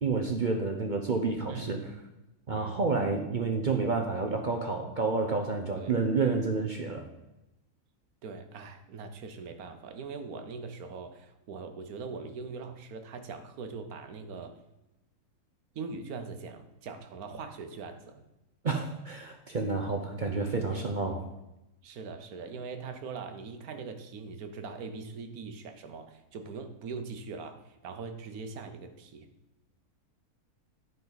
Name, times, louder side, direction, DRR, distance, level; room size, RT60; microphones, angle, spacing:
voice 1, 0.0-1.8 2.5-7.1 18.6-21.2, right 4 dB, 45° right, 3 dB, 0.6 m, -29 dB
voice 2, 2.5-2.8 5.8-6.4 8.2-14.6 15.7-18.2 20.1-20.2 20.7-21.0 21.8-29.3, right 4 dB, 70° right, 7 dB, 1.3 m, -41 dB
12.0 x 5.3 x 4.0 m, 0.96 s
omnidirectional pair, 1.6 m